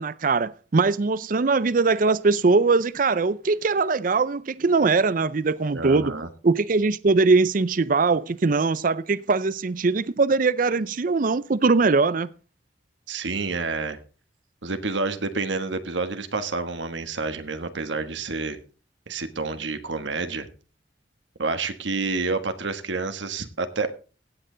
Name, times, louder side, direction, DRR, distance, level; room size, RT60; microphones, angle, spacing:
voice 1, 0.0-6.1 6.4-12.3, right 4 dB, 45° right, 0.5 m, -21 dB
voice 2, 5.7-6.3 13.1-14.0 14.6-18.6 19.1-20.5 21.4-23.9, right 3 dB, 80° right, 1.4 m, -29 dB
16.5 x 8.9 x 3.9 m
head